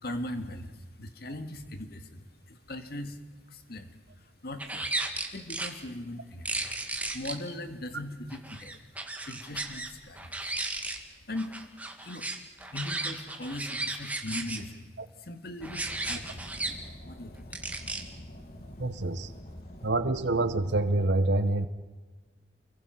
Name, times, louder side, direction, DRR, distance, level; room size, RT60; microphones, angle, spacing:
voice 1, 0.0-3.2 3.5-4.9 5.3-6.5 7.1-8.7 9.2-10.4 11.3-11.6 12.0-12.3 12.7-14.9 15.2-17.5, left 1 dB, 60° left, 8 dB, 1.9 m, -39 dB
sound 1, 4.6-5.7 6.4-7.3 8.3-9.9 10.1-11.0 11.3-14.6 15.6-16.7 17.5-18.0, right 2 dB, 10° right, 2.1 m, -34 dB
Car, 15.6-21.1, left 1 dB, 40° left, 1.8 m, -46 dB
voice 2, 18.8-19.3 19.8-21.7, right 2 dB, 85° right, 11 dB, 1.1 m, -26 dB
29.0 x 23.0 x 6.0 m, 1.3 s
head